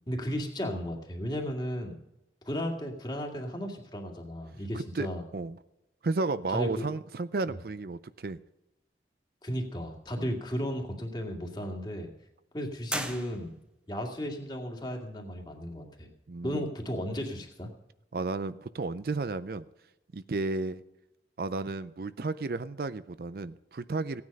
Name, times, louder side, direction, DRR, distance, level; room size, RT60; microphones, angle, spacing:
voice 1, 0.1-2.0 2.4-5.2 6.5-6.9 7.5-7.6 9.4-12.1 12.5-13.5 13.9-16.1 16.4-17.7, equal, 25° left, 2 dB, 2.1 m, -34 dB
voice 2, 4.7-5.1 5.3-5.6 6.0-8.4 10.2-10.3 16.3-16.7 18.1-19.7 20.1-20.8 21.4-24.2, right 3 dB, 55° right, 14 dB, 0.5 m, -33 dB
sound 1, 12.9-13.9, right 1 dB, 5° right, 1.2 m, -36 dB
16.5 x 9.5 x 5.4 m, 0.91 s
head